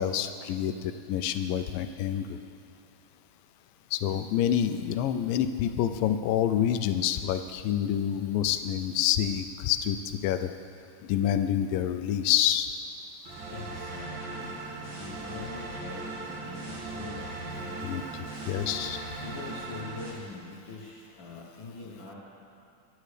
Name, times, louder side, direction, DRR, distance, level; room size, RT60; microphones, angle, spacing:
voice 1, 0.0-2.3 3.9-10.0 10.2-10.5 11.1-12.7 17.8-19.0, left 10 dB, 90° left, 9 dB, 2.3 m, -27 dB
sound 1, 13.2-20.1, right 3 dB, 55° right, 2.9 m, -38 dB
voice 2, 13.5-14.5 14.9-18.1 19.2-22.1, left 3 dB, 70° left, -4 dB, 1.1 m, -43 dB
23.0 x 9.4 x 3.3 m, 2.6 s
omnidirectional pair, 3.9 m